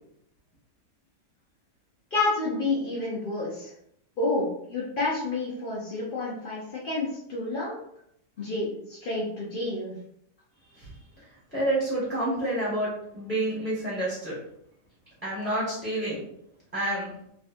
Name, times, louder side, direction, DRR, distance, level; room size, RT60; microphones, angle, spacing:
voice 1, 2.1-3.7 4.2-7.8 8.4-10.0, left 2 dB, 60° left, -6 dB, 0.5 m, -29 dB
voice 2, 11.5-14.4 15.2-16.2 16.7-17.1, right 1 dB, 10° right, -9 dB, 1.1 m, -28 dB
3.5 x 2.5 x 2.5 m, 0.74 s
omnidirectional pair, 1.8 m